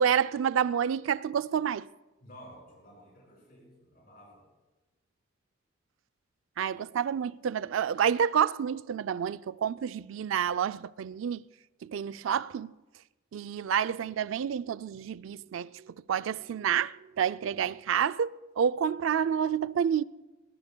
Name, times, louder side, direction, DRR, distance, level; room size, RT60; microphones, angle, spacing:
voice 1, 0.0-1.9 6.6-11.4 11.8-12.7 13.3-20.0, right 8 dB, 80° right, 0.4 m, -29 dB
voice 2, 2.2-4.4, equal, 50° left, 5.5 m, -52 dB
22.0 x 20.5 x 2.2 m
head